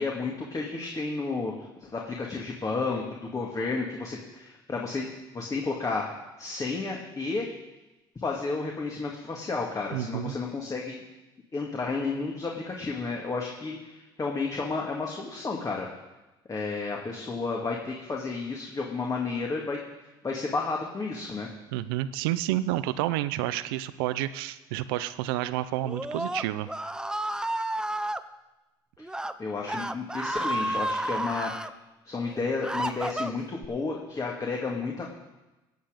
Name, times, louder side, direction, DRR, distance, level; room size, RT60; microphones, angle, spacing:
voice 1, 0.0-1.5 1.8-5.1 5.3-6.1 6.4-7.5 8.2-11.0 11.5-15.9 16.5-19.8 20.2-21.5 29.0-29.1 29.4-31.5 32.0-35.1, left 4 dB, 30° left, -1 dB, 2.2 m, -32 dB
voice 2, 9.9-10.4 21.7-26.7, right 14 dB, 85° right, 15 dB, 0.6 m, -30 dB
Screaming, 25.8-28.2 29.0-29.3 29.6-31.7 32.3-33.7, right 1 dB, 5° right, 0.7 m, -31 dB
16.0 x 8.7 x 5.2 m, 1.1 s
hypercardioid pair, 70°, 12 cm